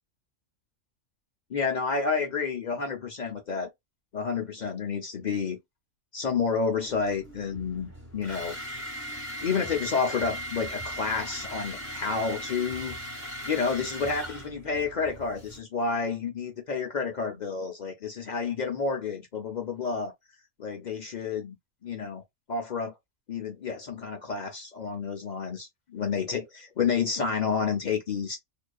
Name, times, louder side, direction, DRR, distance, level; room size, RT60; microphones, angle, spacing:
voice 1, 1.5-3.7 4.1-5.6 6.1-8.6 9.4-13.0 13.4-20.1 20.6-21.6 21.8-22.2 22.5-22.9 23.3-28.4, left 5 dB, 55° left, 0.5 m, -30 dB
sound 1, 6.9-15.6, equal, 10° right, 0.9 m, -39 dB
2.6 x 2.2 x 2.2 m
omnidirectional pair, 1.3 m